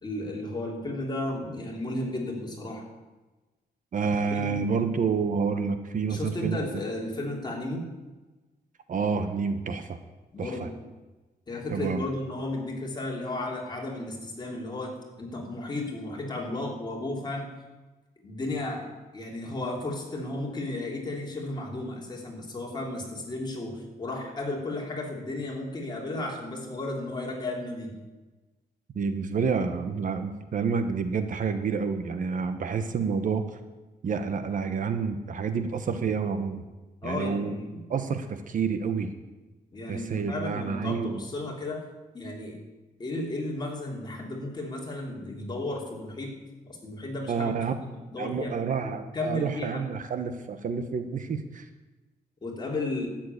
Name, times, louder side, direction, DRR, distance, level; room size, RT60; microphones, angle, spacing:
voice 1, 0.0-2.8 4.3-4.6 6.1-7.9 10.3-10.8 11.5-17.5 18.2-27.9 37.0-37.8 39.7-41.8 42.1-42.6 43.0-46.4 46.7-47.5 47.9-48.6 48.8-49.9 52.4-53.1, left 2 dB, 25° left, -1 dB, 3.1 m, -34 dB
voice 2, 3.9-6.6 8.9-10.0 10.4-10.7 11.7-12.1 28.9-33.4 34.0-36.6 37.0-37.6 37.9-39.1 39.9-41.2 47.3-47.7 48.2-51.7, right 5 dB, 55° right, 9 dB, 1.1 m, -29 dB
12.5 x 7.6 x 9.5 m, 1.2 s
wide cardioid pair, 160°, 16 cm